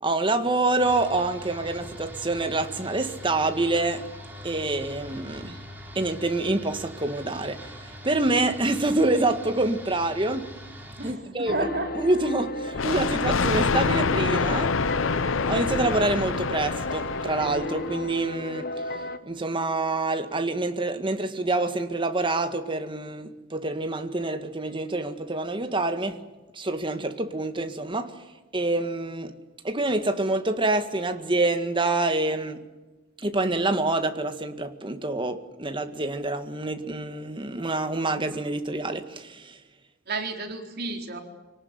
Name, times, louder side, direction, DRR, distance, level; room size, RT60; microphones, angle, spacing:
voice 1, 0.0-4.0 4.4-5.6 6.0-7.6 8.0-10.5 11.0-11.7 12.0-14.8 15.4-18.7 19.3-26.2 26.5-28.2 28.5-29.3 29.6-32.6 33.2-39.6, right 2 dB, 25° right, 1.9 m, -26 dB
sound 1, 0.8-11.1, equal, 10° right, 5.0 m, -43 dB
voice 2, 11.0-11.9 40.1-41.2, right 2 dB, 55° right, 4.0 m, -31 dB
sound 2, 11.5-19.2, left 2 dB, 50° left, 1.4 m, -33 dB
Thunder, 12.7-18.1, left 4 dB, 80° left, 0.8 m, -26 dB
26.0 x 18.5 x 9.6 m
head